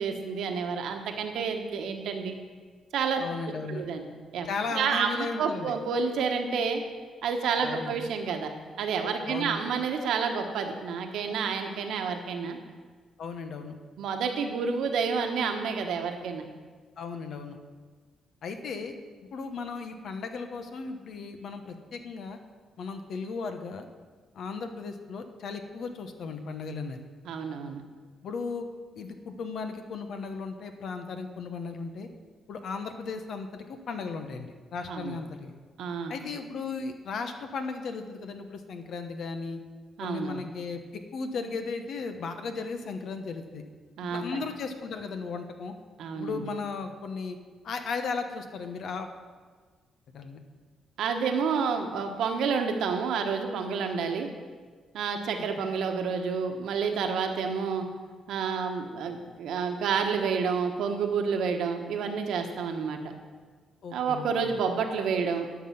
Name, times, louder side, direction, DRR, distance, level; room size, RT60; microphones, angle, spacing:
voice 1, 0.0-2.3 2.9-3.2 3.7-4.1 4.3-4.5 4.7-6.8 7.2-12.6 14.0-16.4 27.2-27.8 34.9-35.2 35.8-36.1 40.0-40.4 44.0-44.2 46.0-46.4 51.0-54.3 54.9-57.9 58.3-63.1 63.9-65.5, right 5 dB, 75° right, 5 dB, 1.1 m, -29 dB
voice 2, 3.2-3.8 4.4-5.7 7.6-7.9 9.3-9.6 13.2-13.8 17.0-17.6 18.4-18.9 19.3-22.4 22.8-23.9 24.3-27.0 28.2-28.7 29.0-32.1 32.5-35.6 36.1-39.6 40.0-40.8 41.1-43.6 44.0-45.7 46.1-47.4 47.6-49.2 50.1-50.4 55.3-55.4 63.8-64.6, left 4 dB, 70° left, 7 dB, 1.1 m, -36 dB
11.5 x 5.9 x 5.9 m, 1.5 s
supercardioid pair, 65°, 0 cm